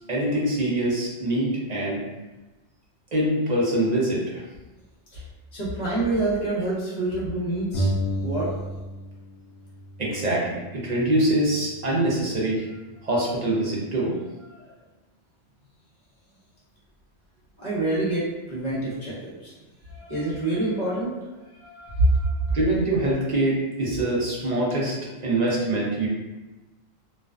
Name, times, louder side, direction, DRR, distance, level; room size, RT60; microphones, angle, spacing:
voice 1, 0.1-2.0 3.1-4.4 6.3-6.4 10.0-12.6 13.0-14.1 22.5-24.9 25.2-26.1, right 1 dB, 45° right, -5 dB, 0.6 m, -24 dB
voice 2, 5.5-7.9 8.2-8.5 14.5-14.7 17.6-19.5 19.9-21.1 21.6-22.6, right 2 dB, 40° left, -8 dB, 0.9 m, -26 dB
sound 1, 7.7-9.2 9.5-11.3, equal, 85° left, 1.0 m, -31 dB
2.4 x 2.2 x 2.3 m, 1.1 s
omnidirectional pair, 1.2 m